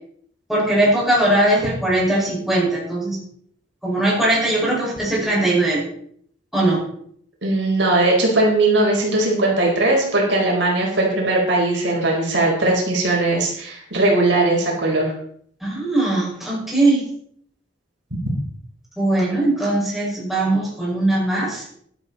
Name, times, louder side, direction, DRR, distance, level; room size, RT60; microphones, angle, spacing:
voice 1, 0.5-3.2 3.8-5.8 6.5-6.8 15.6-17.0 19.0-21.7, right 1 dB, ahead, -6 dB, 5.6 m, -20 dB
voice 2, 7.4-15.1, right 2 dB, 70° right, -2 dB, 4.5 m, -19 dB
12.5 x 12.0 x 4.2 m, 0.64 s
head